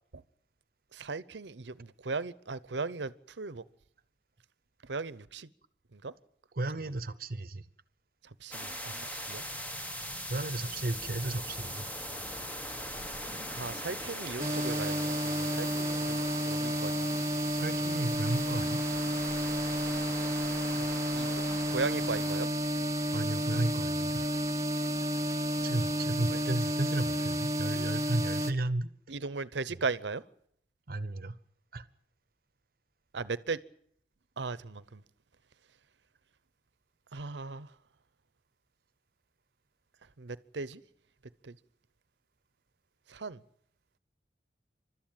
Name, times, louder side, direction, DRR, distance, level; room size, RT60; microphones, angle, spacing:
voice 1, 0.9-3.6 4.9-5.5 5.9-6.1 8.4-9.4 13.5-16.9 20.8-21.4 21.7-22.5 26.3-26.4 29.1-30.2 33.1-33.6 34.4-35.0 37.1-37.7 40.2-40.8 41.4-41.5 43.1-43.4, right 4 dB, 90° right, 18 dB, 0.8 m, -37 dB
voice 2, 6.5-7.6 10.3-11.9 17.5-18.8 23.1-24.3 25.6-28.9 30.9-31.4 31.7-31.8, right 2 dB, 55° right, 16 dB, 0.9 m, -33 dB
sound 1, 8.5-22.5, equal, 10° left, 1.2 m, -41 dB
sound 2, 14.4-28.5, equal, 15° right, 1.0 m, -31 dB
28.5 x 13.0 x 8.9 m, 0.69 s
head